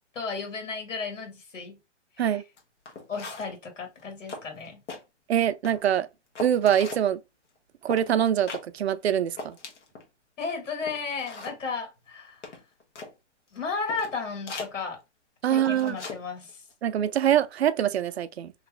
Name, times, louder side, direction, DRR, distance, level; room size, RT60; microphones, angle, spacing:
voice 1, 0.1-1.8 2.2-2.4 3.1-4.8 10.4-12.5 13.5-15.0 15.5-16.6, left 5 dB, 90° left, 2.4 m, -34 dB
sound 1, 2.6-2.7 2.9-3.6 4.0-4.1 4.3-5.0 5.4-5.9 6.4-7.1 7.9-8.1 8.5-8.7 9.0-9.1 9.4-10.1 10.5-10.6 10.8-11.6 12.4-13.1 13.6-13.7 13.9-14.1 14.5-14.7 15.6-16.2 16.5-16.7, left 3 dB, 70° left, 1.5 m, -39 dB
voice 2, 5.3-6.1 6.4-7.2 7.8-9.6 15.4-16.0 16.8-18.5, right 10 dB, 60° right, 0.5 m, -24 dB
3.1 x 2.9 x 3.7 m
hypercardioid pair, 175°, 36 cm